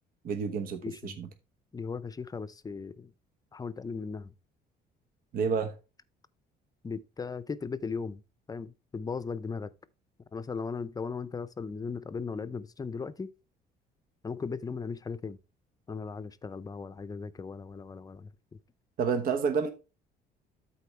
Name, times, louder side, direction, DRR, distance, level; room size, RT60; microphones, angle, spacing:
voice 1, 0.2-1.3 5.3-5.7 19.0-19.7, right 5 dB, 60° right, 1.1 m, -29 dB
voice 2, 0.8-1.2 1.7-3.1 3.5-4.3 6.8-8.2 8.5-9.7 10.3-13.3 14.2-15.4 15.9-18.3, left 5 dB, 20° left, 0.6 m, -37 dB
13.0 x 4.3 x 3.2 m
cardioid pair, 110°, 17 cm